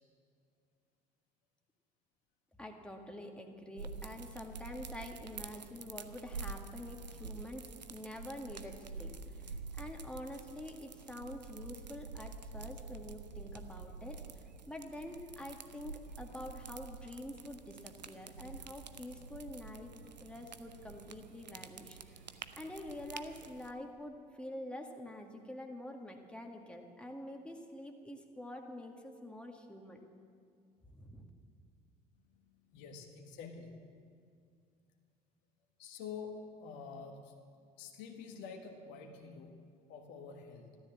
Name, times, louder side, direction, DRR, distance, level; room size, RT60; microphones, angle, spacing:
voice 1, 2.6-19.9 20.2-22.2 22.6-30.0 30.9-31.3, left 1 dB, 5° left, 2 dB, 2.0 m, -47 dB
sound 1, 3.8-23.7, right 4 dB, 90° right, 0.6 m, -48 dB
voice 2, 32.7-33.8 35.8-37.3 37.8-40.7, left 5 dB, 60° left, 3 dB, 1.5 m, -47 dB
14.0 x 12.5 x 7.4 m, 2.3 s
figure-of-eight pair, 60°, 21 cm